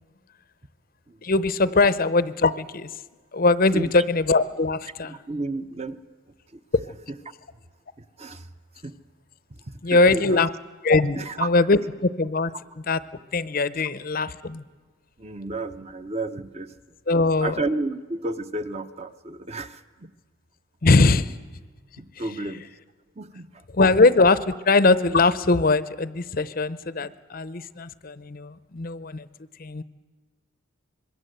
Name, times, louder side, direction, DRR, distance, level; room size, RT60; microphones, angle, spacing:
voice 1, 1.2-2.9 3.3-5.2 9.8-10.5 10.8-13.0 13.3-14.6 17.1-17.6 20.8-21.4 22.2-22.3 23.7-29.3 29.6-29.8, left 3 dB, 40° left, 16 dB, 0.7 m, -21 dB
voice 2, 3.7-4.0 5.1-6.0 6.5-6.6 8.2-8.5 8.8-8.9 9.9-10.4 11.2-11.5 15.2-16.7 17.4-20.1 22.0-22.7 23.2-23.5 27.0-27.1, right 2 dB, 30° right, 10 dB, 0.8 m, -32 dB
26.0 x 21.5 x 7.9 m, 1.4 s
head